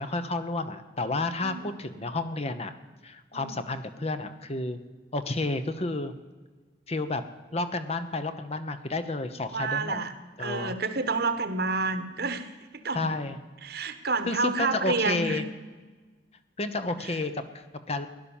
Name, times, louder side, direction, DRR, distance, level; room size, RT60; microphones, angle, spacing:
voice 1, 0.0-2.7 3.0-4.8 5.1-6.1 6.9-7.2 7.5-10.0 10.4-10.7 12.9-13.4 14.3-15.5 16.6-18.1, left 2 dB, 35° left, 10 dB, 1.0 m, -31 dB
voice 2, 1.4-1.7 3.3-3.6 9.5-10.1 10.4-13.1 13.6-15.4 17.0-17.2, right 3 dB, 60° right, 10 dB, 1.3 m, -29 dB
17.0 x 11.5 x 7.2 m, 1.4 s
head